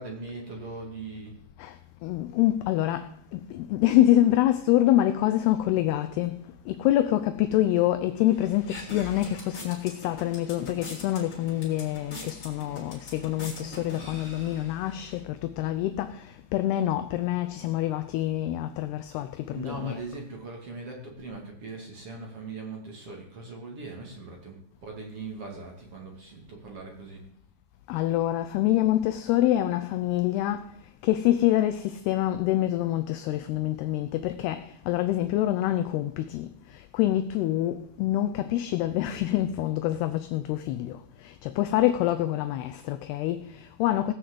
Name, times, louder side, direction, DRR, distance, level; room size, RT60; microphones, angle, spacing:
voice 1, 0.0-1.3 19.5-27.2, right 3 dB, 40° right, 2.5 m, -40 dB
voice 2, 2.0-6.4 6.7-20.0 27.9-30.6 31.0-36.5 36.9-41.0 41.2-44.1, left 13 dB, 80° left, 2.4 m, -26 dB
sound 1, 8.3-15.2, left 2 dB, 35° left, 4.0 m, -43 dB
18.0 x 6.4 x 7.7 m
omnidirectional pair, 5.3 m